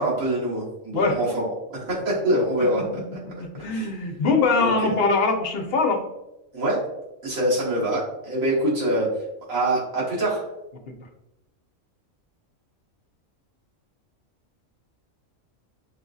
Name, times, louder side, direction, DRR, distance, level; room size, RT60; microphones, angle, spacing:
voice 1, 0.0-2.8 3.7-3.9 4.6-4.7 6.5-6.8 7.2-9.1 9.5-10.4, right 1 dB, 80° right, -6 dB, 1.8 m, -24 dB
voice 2, 3.4-6.0 10.9-11.0, left 3 dB, 55° left, 2 dB, 0.8 m, -22 dB
6.5 x 2.5 x 2.3 m, 0.92 s
omnidirectional pair, 1.4 m